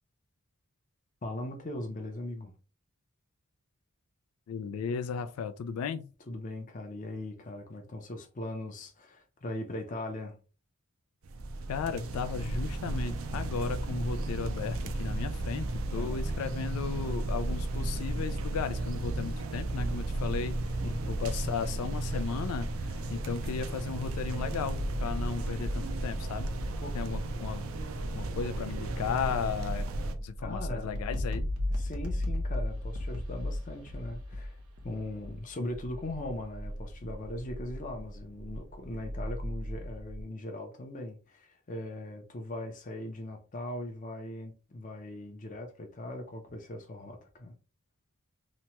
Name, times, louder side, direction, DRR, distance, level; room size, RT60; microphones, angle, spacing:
voice 1, 1.2-2.5 6.3-10.4 15.9-16.3 20.8-21.2 26.8-27.2 30.4-31.0 31.7-34.6 34.8-47.5, left 1 dB, 35° left, 0.6 m, -40 dB
voice 2, 4.5-6.1 11.7-20.6 21.1-26.5 26.9-27.6 28.1-29.9 30.2-31.5, left 6 dB, 90° left, 0.3 m, -35 dB
sound 1, 11.2-30.1, right 2 dB, 70° right, 0.4 m, -34 dB
sound 2, 24.7-40.2, left 1 dB, 90° right, 0.8 m, -37 dB
3.0 x 2.2 x 2.8 m
head